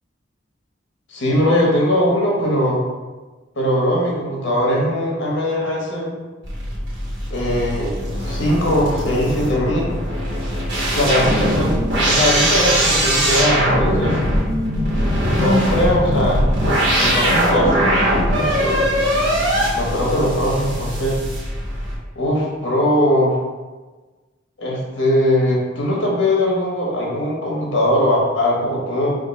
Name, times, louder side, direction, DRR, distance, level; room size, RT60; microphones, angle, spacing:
voice 1, 1.1-2.8 3.6-6.2 7.3-9.9 10.9-14.2 15.3-16.5 17.0-18.8 19.7-21.2 22.1-23.4 24.6-29.2, left 1 dB, 70° left, -2 dB, 1.0 m, -20 dB
sound 1, 6.4-22.0, equal, 65° right, 1.1 m, -20 dB
3.6 x 2.6 x 4.0 m, 1.3 s
head